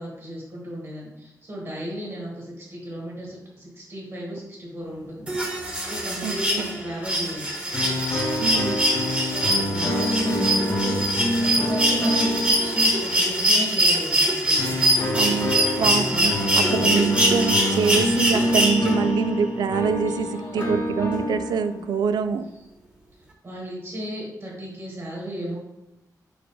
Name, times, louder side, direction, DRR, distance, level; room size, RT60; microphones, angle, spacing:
voice 1, 0.0-7.5 9.2-14.8 15.3-17.1 17.6-17.9 18.7-19.0 20.1-20.7 23.4-25.6, equal, 45° right, -3 dB, 1.9 m, -34 dB
sound 1, 5.3-19.2 20.6-20.7, equal, 15° right, 1.2 m, -23 dB
voice 2, 6.2-6.7 8.4-8.8 15.1-15.5 15.8-16.3 16.7-22.4, right 6 dB, 85° right, 10 dB, 0.4 m, -25 dB
sound 2, 7.7-13.5 14.6-22.0, left 1 dB, 50° left, 1.2 m, -27 dB
6.4 x 4.5 x 3.3 m, 0.93 s
wide cardioid pair, 115°, 7 cm